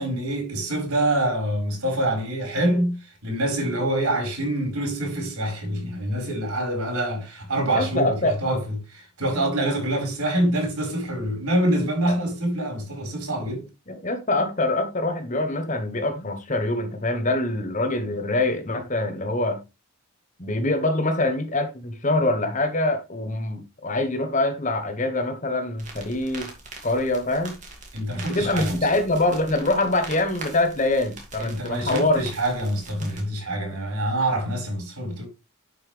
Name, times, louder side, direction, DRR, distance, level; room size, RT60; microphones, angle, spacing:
voice 1, 0.0-13.7 27.9-28.9 31.4-35.2, right 1 dB, 80° right, 5.0 m, -26 dB
voice 2, 7.7-8.4 12.1-12.2 13.9-19.6 20.4-26.5 26.8-27.6 28.3-32.2 33.0-33.1, left 2 dB, 35° left, 1.2 m, -24 dB
sound 1, 25.8-33.2, right 3 dB, 35° right, 2.5 m, -42 dB
10.5 x 5.5 x 3.4 m
head